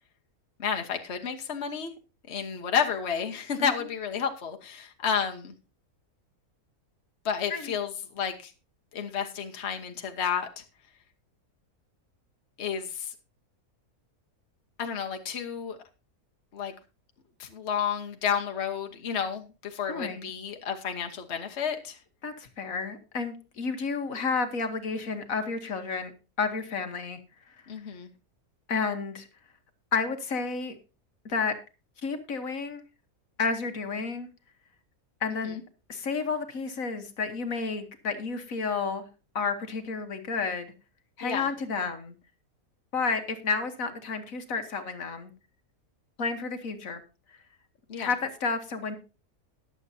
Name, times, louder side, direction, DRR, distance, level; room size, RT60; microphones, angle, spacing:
voice 1, 0.6-1.9 2.3-5.5 7.2-8.5 8.9-10.6 12.6-13.1 14.8-15.8 16.5-16.7 17.4-22.0 27.7-28.1 35.4-35.5 41.2-41.5 47.9-48.1, left 7 dB, 50° left, 4 dB, 1.4 m, -31 dB
voice 2, 19.9-20.3 22.2-26.1 26.4-27.2 27.5-27.6 28.7-29.3 29.9-30.8 31.2-31.6 32.0-32.8 33.4-34.3 35.2-35.6 35.9-39.0 39.3-40.7 41.2-42.1 42.9-45.3 46.2-47.0 48.0-49.0, left 4 dB, 65° left, 7 dB, 1.6 m, -31 dB
20.5 x 7.3 x 2.7 m, 0.32 s
omnidirectional pair, 1.5 m